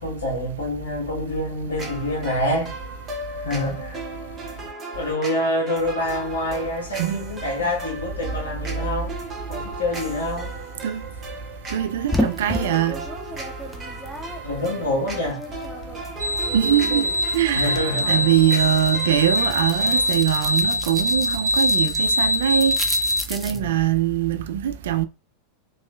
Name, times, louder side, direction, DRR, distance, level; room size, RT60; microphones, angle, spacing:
voice 1, 0.0-2.7 3.4-4.0 4.9-9.2 9.5-10.5 14.4-15.4 17.5-18.3 23.5-23.8, left 1 dB, 70° left, 1.1 m, -26 dB
sound 1, 1.8-20.1, right 2 dB, 20° right, 1.1 m, -37 dB
voice 2, 11.7-13.0 16.5-17.0 17.3-22.7 23.3-25.0, right 10 dB, 60° right, 0.3 m, -22 dB
sound 2, 12.1-16.0 16.4-23.6, left 1 dB, ahead, 0.5 m, -33 dB
sound 3, 16.2-23.2, left 1 dB, 85° left, 1.3 m, -23 dB
3.0 x 3.0 x 2.2 m
figure-of-eight pair, 85°, 0 cm